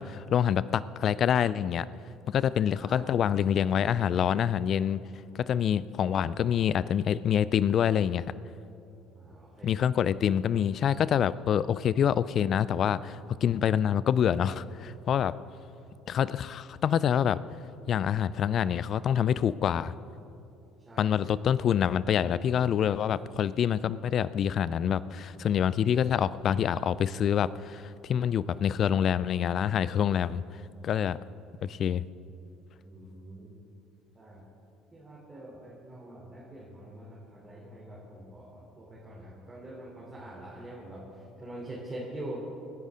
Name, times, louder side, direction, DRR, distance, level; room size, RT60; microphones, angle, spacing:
voice 1, 0.0-1.9 2.3-5.0 5.4-8.3 9.6-15.3 16.1-17.4 17.9-19.9 21.0-30.4 30.8-31.2 31.6-32.0, left 9 dB, 45° left, 18 dB, 0.4 m, -26 dB
voice 2, 9.2-9.8 20.9-21.2 32.8-33.5 34.2-34.4 34.9-42.4, right 1 dB, 25° right, -5 dB, 3.4 m, -44 dB
26.0 x 10.5 x 3.8 m, 2.7 s
figure-of-eight pair, 60°, 0 cm